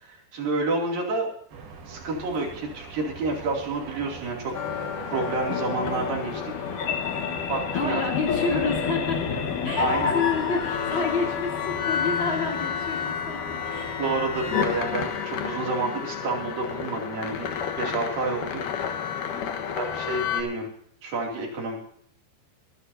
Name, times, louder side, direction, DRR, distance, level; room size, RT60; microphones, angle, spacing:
voice 1, 0.0-1.3 1.9-4.5 5.1-6.4 7.5-8.0 9.7-10.1 14.0-17.5 17.8-18.6 19.7-20.7 21.0-21.8, right 3 dB, 60° right, 0 dB, 4.3 m, -29 dB
sound 1, 1.5-15.1, right 4 dB, 85° right, 5.5 m, -43 dB
sound 2, 4.5-20.4, left 7 dB, 65° left, 2.4 m, -29 dB
voice 2, 7.7-9.4 9.6-9.9 10.1-14.0 19.3-19.8, left 4 dB, 35° left, 1 dB, 2.8 m, -29 dB
24.5 x 12.5 x 2.7 m, 0.66 s
omnidirectional pair, 4.8 m